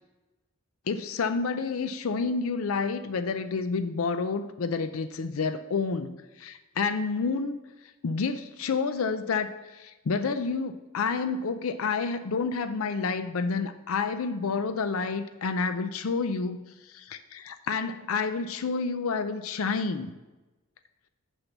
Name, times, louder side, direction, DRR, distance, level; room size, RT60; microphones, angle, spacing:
voice 1, 0.9-7.6 8.0-16.6 16.9-20.1, left 4 dB, 70° left, 10 dB, 0.5 m, -29 dB
6.7 x 5.6 x 7.2 m, 1.1 s
head